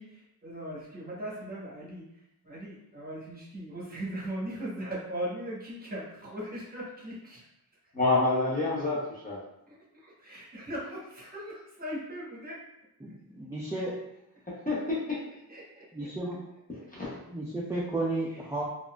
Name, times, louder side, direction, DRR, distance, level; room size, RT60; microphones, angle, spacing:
voice 1, 0.0-2.0 2.4-7.5 9.7-12.6 15.5-16.1 16.8-16.9 18.3-18.4, right 1 dB, 25° right, -6 dB, 1.0 m, -39 dB
voice 2, 7.9-9.4 14.7-15.2 16.9-17.2, left 2 dB, 25° left, -5 dB, 0.8 m, -27 dB
voice 3, 13.0-14.0 15.9-16.4 17.3-18.6, right 2 dB, 10° right, -5 dB, 0.3 m, -33 dB
3.9 x 2.4 x 2.3 m, 0.85 s
wide cardioid pair, 150°, 36 cm